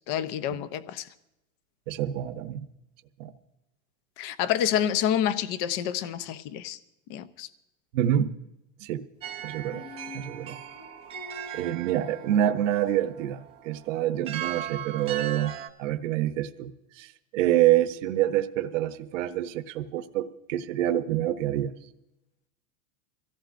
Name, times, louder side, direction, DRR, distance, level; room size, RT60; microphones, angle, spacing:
voice 1, 0.1-1.1 4.2-6.8 7.1-7.5, left 10 dB, 35° left, 14 dB, 0.6 m, -28 dB
voice 2, 1.9-2.6 3.2-3.3 7.9-8.4 8.8-9.0 9.4-9.8 10.1-10.6 11.5-15.5 15.8-17.1 17.3-21.7, right 12 dB, 70° right, 8 dB, 0.9 m, -27 dB
sound 1, 9.2-15.7, right 10 dB, 15° right, 0.4 m, -39 dB
sound 2, 9.7-12.9, left 5 dB, 65° left, 3.8 m, -47 dB
24.5 x 14.5 x 2.5 m, 0.90 s
supercardioid pair, 155°, 40 cm